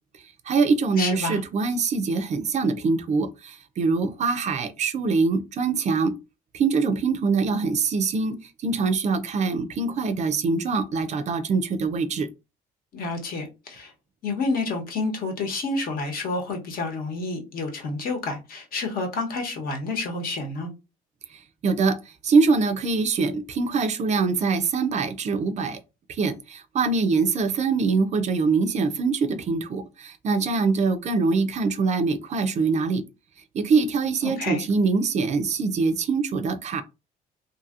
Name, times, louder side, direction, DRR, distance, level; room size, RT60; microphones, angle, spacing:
voice 1, 0.4-6.1 6.5-12.3 21.3-25.8 26.1-33.0 33.5-36.8, right 4 dB, 45° right, 0.4 m, -24 dB
voice 2, 1.0-1.4 12.9-13.9 14.2-20.7 34.2-34.6, left 3 dB, 60° left, 1.0 m, -29 dB
2.7 x 2.7 x 2.4 m
cardioid pair, 110°, 17 cm